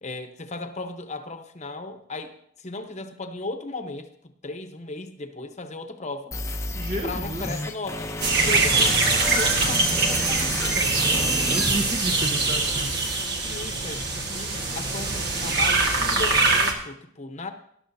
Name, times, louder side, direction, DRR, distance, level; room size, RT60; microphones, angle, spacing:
voice 1, 0.0-4.1 4.4-6.4 7.0-8.2 8.4-11.0 13.3-17.5, left 2 dB, 35° left, 7 dB, 1.0 m, -36 dB
sound 1, 6.3-12.3, left 2 dB, 15° left, 0.8 m, -32 dB
voice 2, 6.7-7.7 11.3-12.9, right 1 dB, 35° right, 2 dB, 1.1 m, -32 dB
sound 2, 8.2-16.7, right 3 dB, 55° right, 1.6 m, -23 dB
19.5 x 11.5 x 2.8 m, 0.70 s
head